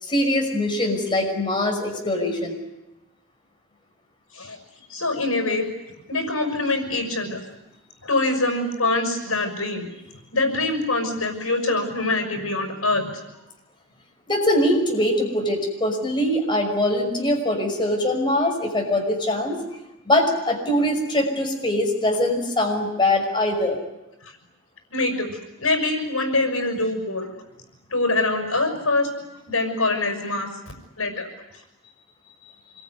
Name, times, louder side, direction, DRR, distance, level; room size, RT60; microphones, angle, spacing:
voice 1, 0.0-2.5 14.3-19.8 20.1-23.8, left 1 dB, 25° left, 1 dB, 5.8 m, -22 dB
voice 2, 4.9-5.7 6.1-7.4 8.0-9.9 10.3-13.2 24.2-24.3 24.9-27.3 27.9-29.1 29.5-30.5 31.0-31.3, left 2 dB, 85° left, 6 dB, 6.1 m, -24 dB
26.5 x 23.0 x 9.6 m, 0.95 s
head